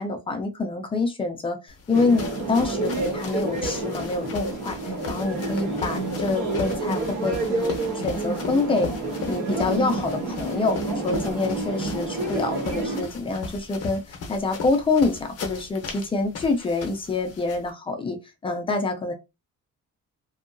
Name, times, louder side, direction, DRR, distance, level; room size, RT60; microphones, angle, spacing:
voice 1, 0.0-4.8 5.1-7.7 8.0-8.9 9.2-10.8 11.0-14.0 14.3-19.1, left 3 dB, 20° left, 0.3 m, -26 dB
sound 1, 1.7-17.7, left 4 dB, 50° left, 0.7 m, -38 dB
sound 2, 1.9-13.0, right 2 dB, 65° right, 1.2 m, -29 dB
2.7 x 2.3 x 2.5 m
cardioid pair, 175°, 32 cm